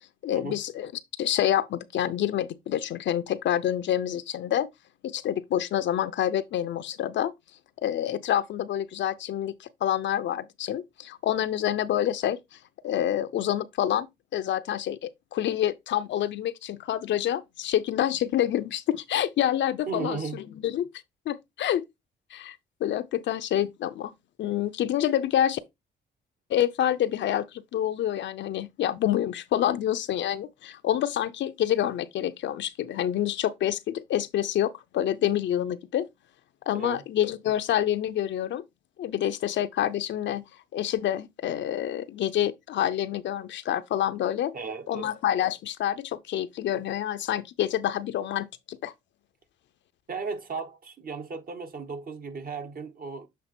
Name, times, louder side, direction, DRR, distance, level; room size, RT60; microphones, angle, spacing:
voice 1, 0.2-0.9 1.2-4.7 5.0-7.3 7.8-12.6 12.8-14.1 14.3-20.9 21.3-21.8 22.3-24.1 24.4-25.6 26.5-36.1 36.7-38.6 39.0-40.5 40.7-44.5 44.9-48.9, left 11 dB, 65° left, 0.6 m, -27 dB
voice 2, 19.9-20.4 36.7-37.0 44.5-45.1 50.1-53.3, right 4 dB, 45° right, 1.3 m, -35 dB
7.4 x 3.0 x 4.3 m
cardioid pair, 90°, 20 cm